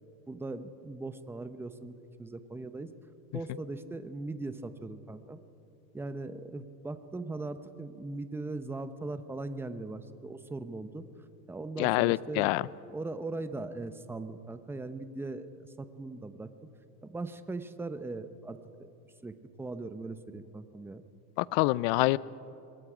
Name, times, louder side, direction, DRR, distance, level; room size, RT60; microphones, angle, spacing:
voice 1, 0.3-2.9 3.3-5.4 5.9-11.1 11.5-12.6 12.9-16.5 17.0-18.6 19.2-21.0, right 2 dB, 5° right, 10 dB, 0.7 m, -39 dB
voice 2, 11.8-12.6 21.4-22.2, left 20 dB, 50° left, 20 dB, 0.5 m, -26 dB
26.5 x 22.0 x 5.0 m, 2.7 s
supercardioid pair, 140°, 42 cm